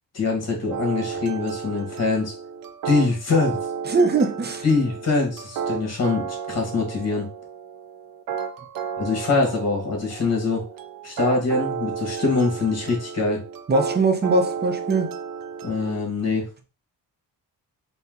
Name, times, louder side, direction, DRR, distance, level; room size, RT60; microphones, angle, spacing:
voice 1, 0.1-2.3 2.8-3.6 4.6-7.3 9.0-10.6 11.0-13.4 15.6-16.5, left 4 dB, 45° left, 1.8 m, -23 dB
sound 1, 0.7-16.0, right 7 dB, 65° right, 0.6 m, -32 dB
voice 2, 3.9-4.6 13.7-15.1, right 3 dB, 25° right, 0.7 m, -21 dB
4.4 x 2.3 x 3.8 m
cardioid pair, 125°, 36 cm